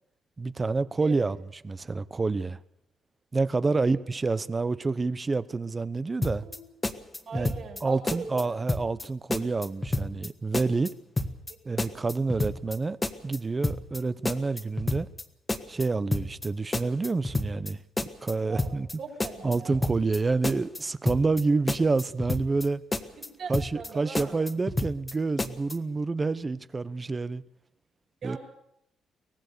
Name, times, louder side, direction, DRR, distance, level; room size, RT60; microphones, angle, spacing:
voice 1, 0.4-1.4 1.6-2.6 3.3-6.4 7.3-7.5 7.8-10.9 11.6-13.0 13.2-15.1 15.7-17.8 18.2-18.9 19.4-22.8 23.5-27.4 28.2-28.4, right 3 dB, 25° right, 0.9 m, -28 dB
voice 2, 1.0-1.3 3.7-4.0 6.4-6.6 7.3-8.6 11.5-11.6 18.5-18.7 19.0-19.8 23.2-24.4 28.2-28.4, right 5 dB, 65° right, 7.1 m, -40 dB
sound 1, 6.2-6.6 6.8-7.8 8.1-8.4 8.7-9.0 9.3-10.3 10.5-10.9 11.2-11.5 11.8-12.8 13.0-13.4 13.6-14.0 14.3-15.2 15.5-15.8 16.1-16.5 16.7-17.7 18.0-18.3 18.6-18.9 19.2-20.2 20.4-20.8 21.1-21.4 21.7-22.7 22.9-23.3 23.5-23.9 24.1-25.1 25.4-25.7, left 2 dB, 20° left, 1.7 m, -30 dB
23.5 x 17.5 x 6.9 m
cardioid pair, 90°, 0 cm